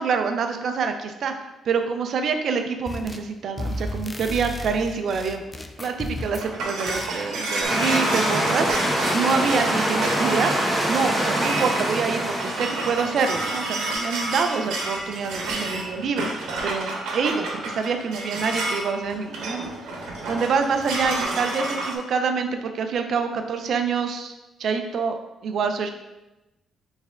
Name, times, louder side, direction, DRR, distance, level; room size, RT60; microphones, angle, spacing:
voice 1, 0.0-1.3 1.6-5.4 5.8-10.5 10.9-19.7 20.3-24.3 24.6-25.2 25.4-25.9, right 5 dB, 65° right, 6 dB, 0.5 m, -26 dB
sound 1, 2.9-3.3 3.6-6.5 6.9-7.2, left 1 dB, 20° left, 0.4 m, -34 dB
sound 2, 6.0-21.9, right 2 dB, 85° right, 1.0 m, -30 dB
sound 3, 7.6-13.0, right 1 dB, 5° right, 1.3 m, -24 dB
4.3 x 3.4 x 3.6 m, 1.0 s
cardioid pair, 90°, 0 cm